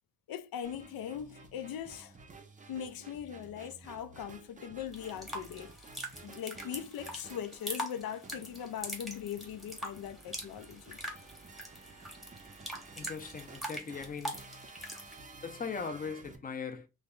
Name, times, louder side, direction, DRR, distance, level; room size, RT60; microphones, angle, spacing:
voice 1, 0.3-2.2 2.7-5.9 6.2-11.0, left 9 dB, 85° left, 0.5 m, -40 dB
sound 1, 0.6-16.4, right 3 dB, 25° right, 0.5 m, -53 dB
sound 2, 4.9-15.2, equal, ahead, 0.9 m, -43 dB
voice 2, 13.0-14.4 15.4-16.9, left 5 dB, 25° left, 0.5 m, -39 dB
3.1 x 2.2 x 3.6 m
wide cardioid pair, 165°, 34 cm